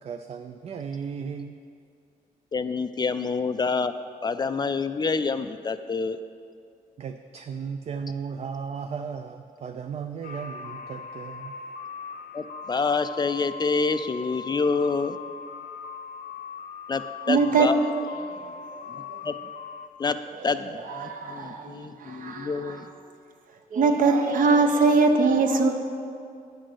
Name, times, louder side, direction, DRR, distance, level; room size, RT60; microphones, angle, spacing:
voice 1, 0.0-1.5 7.0-11.5, right 6 dB, 45° right, 7 dB, 0.4 m, -35 dB
voice 2, 2.5-3.9 4.2-6.2 12.3-15.2 16.9-17.8 19.0-19.4 20.0-20.2 20.4-22.9, left 4 dB, 30° left, 10 dB, 0.4 m, -27 dB
sound 1, 10.2-19.9, left 6 dB, 75° left, 0.7 m, -40 dB
voice 3, 17.3-17.7 18.2-18.5 18.8-19.2 20.9-22.8 23.7-25.7, right 4 dB, 60° right, 5 dB, 1.0 m, -22 dB
9.5 x 6.4 x 6.3 m, 2.4 s
cardioid pair, 115°, 15 cm